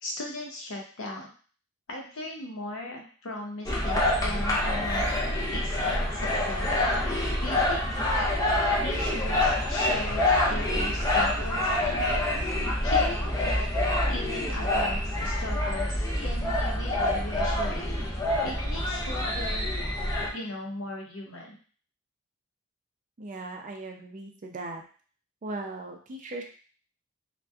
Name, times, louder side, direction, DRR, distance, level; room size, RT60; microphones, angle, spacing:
voice 1, 0.0-1.3 1.9-5.1 5.5-6.9 7.4-7.9 8.8-12.2 12.8-13.7 14.1-17.9 18.4-19.8 20.3-21.6, left 1 dB, 85° left, 0 dB, 0.7 m, -38 dB
sound 1, 3.6-20.3, left 1 dB, 15° left, 0.5 m, -26 dB
sound 2, 3.7-4.3 4.8-5.5 5.8-12.2, right 1 dB, 85° right, 0.7 m, -43 dB
voice 2, 23.2-24.8 25.4-26.4, right 2 dB, 40° right, 3 dB, 0.4 m, -38 dB
2.6 x 2.1 x 2.3 m, 0.41 s
head